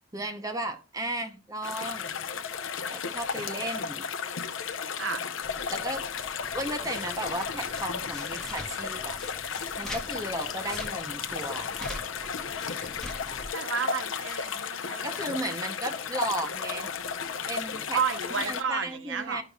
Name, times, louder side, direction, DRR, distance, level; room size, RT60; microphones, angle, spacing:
voice 1, 0.1-2.2 2.9-4.1 5.7-6.1 6.5-9.2 9.8-11.7 15.0-16.9 17.5-18.0 18.5-19.4, right 1 dB, 20° right, 0.7 m, -35 dB
sound 1, 1.6-18.6, left 6 dB, 85° left, 0.7 m, -34 dB
sound 2, 5.4-13.5, left 1 dB, 5° left, 1.6 m, -43 dB
voice 2, 13.5-15.1 17.9-19.4, right 6 dB, 70° right, 0.8 m, -31 dB
11.5 x 5.5 x 2.3 m
head